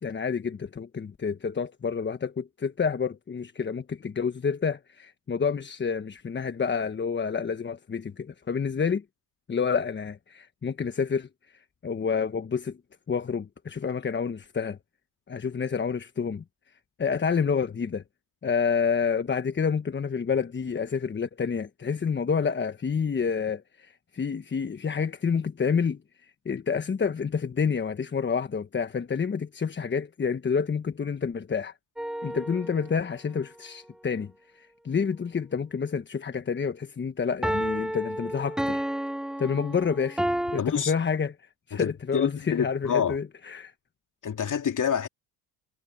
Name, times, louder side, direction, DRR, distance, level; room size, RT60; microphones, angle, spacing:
voice 1, 0.0-9.0 9.5-11.3 11.8-12.8 13.1-14.8 15.3-16.4 17.0-18.0 18.4-31.7 32.2-38.8 39.4-40.2 40.5-41.3 41.7-43.7, left 6 dB, 25° left, 1.2 m, -28 dB
sound 1, 32.0-33.0 37.4-40.6, right 1 dB, ahead, 0.4 m, -31 dB
voice 2, 40.6-40.9 41.7-43.2 44.2-45.1, left 8 dB, 40° left, 2.7 m, -27 dB
supercardioid pair, 85°, 48 cm